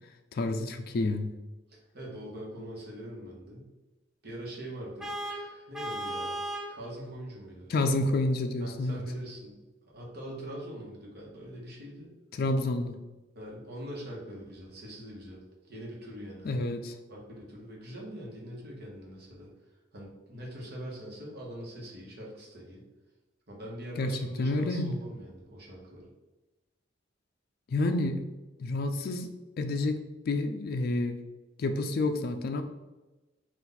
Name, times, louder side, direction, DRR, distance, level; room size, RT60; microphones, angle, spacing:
voice 1, 0.3-1.3 7.7-9.0 12.3-13.0 16.4-16.9 24.0-24.1 24.4-25.0 27.7-28.3 28.6-29.3 29.6-30.0 30.3-31.2 31.6-32.6, left 2 dB, 55° left, 6 dB, 0.3 m, -29 dB
voice 2, 1.7-3.7 4.2-6.4 6.7-7.7 8.6-12.1 13.3-16.7 17.1-19.5 19.9-22.8 23.5-26.1, equal, 55° right, -4 dB, 1.2 m, -43 dB
Vehicle horn car horn honking, 5.0-6.8, right 1 dB, 5° right, 0.5 m, -35 dB
4.1 x 2.5 x 3.9 m, 1.1 s
head